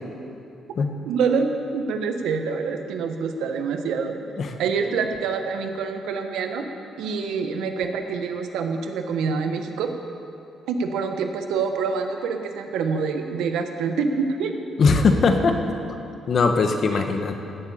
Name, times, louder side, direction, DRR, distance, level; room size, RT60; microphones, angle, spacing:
voice 1, 1.0-4.2 4.6-6.7 7.0-9.9 10.7-14.5 16.9-17.0, right 5 dB, 85° right, 5 dB, 1.2 m, -26 dB
voice 2, 14.8-15.6 16.3-17.3, left 4 dB, 50° left, 5 dB, 1.3 m, -20 dB
14.0 x 7.2 x 8.7 m, 2.7 s
cardioid pair, 90°, 0 cm